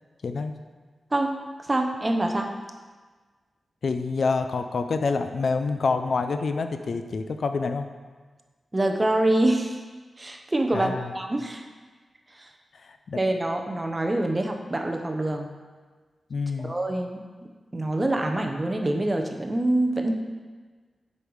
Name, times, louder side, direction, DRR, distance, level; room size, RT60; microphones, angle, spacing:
voice 1, 1.1-1.4 1.7-2.5 8.7-9.8 10.2-11.6 12.4-12.5 13.1-15.5 16.6-17.2 17.7-20.1, right 1 dB, 20° right, 3 dB, 0.7 m, -25 dB
voice 2, 3.8-7.9 10.7-11.1 13.1-13.2 16.3-16.7, left 4 dB, 65° left, 8 dB, 0.4 m, -27 dB
7.9 x 5.5 x 4.7 m, 1.4 s
wide cardioid pair, 125°, 0 cm